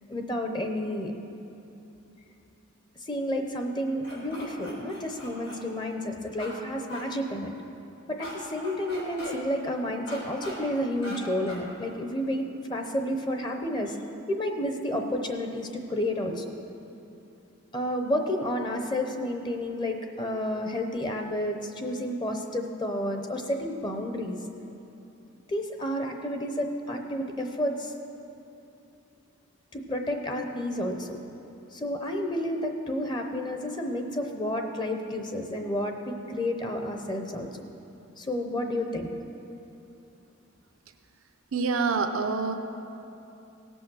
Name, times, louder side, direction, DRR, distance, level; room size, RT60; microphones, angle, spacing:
voice 1, 0.1-1.1 3.0-7.5 8.1-14.0 14.3-16.5 17.7-24.4 25.5-27.9 29.7-31.2 31.7-37.5 38.2-39.1, left 1 dB, 20° left, 4 dB, 0.7 m, -30 dB
sound 1, 4.0-5.6 6.4-6.5 6.9-7.0 8.2-8.3 8.6-9.3 10.1-10.6 11.0-11.2 11.5-11.6, left 1 dB, 75° left, 3.4 m, -40 dB
voice 2, 41.5-42.5, right 4 dB, 80° right, 6 dB, 0.6 m, -26 dB
17.0 x 6.3 x 6.2 m, 2.9 s
head